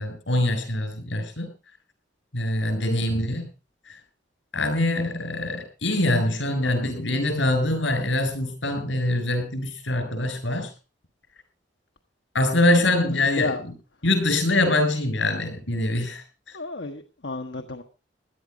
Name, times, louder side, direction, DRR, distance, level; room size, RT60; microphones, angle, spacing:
voice 1, 0.0-1.5 2.3-3.5 4.5-10.7 12.3-13.5 14.0-16.2, left 1 dB, 90° left, 7 dB, 7.0 m, -24 dB
voice 2, 6.4-6.9 12.7-12.8 13.4-13.6 16.5-17.8, left 3 dB, 70° left, 5 dB, 1.2 m, -32 dB
17.0 x 11.5 x 5.1 m, 0.34 s
head